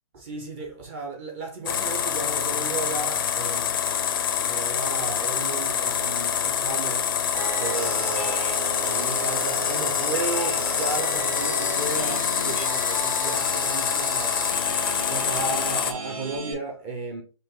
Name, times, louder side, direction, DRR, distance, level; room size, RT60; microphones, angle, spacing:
voice 1, 0.1-3.8 4.4-7.2 7.6-8.5 8.8-14.5 15.1-17.2, right 3 dB, 25° right, 0.7 m, -34 dB
sound 1, 1.7-15.9, left 8 dB, 40° left, 0.5 m, -26 dB
sound 2, 7.3-16.5, right 4 dB, 80° right, 2.2 m, -34 dB
5.1 x 2.4 x 3.8 m
hypercardioid pair, 155°, 17 cm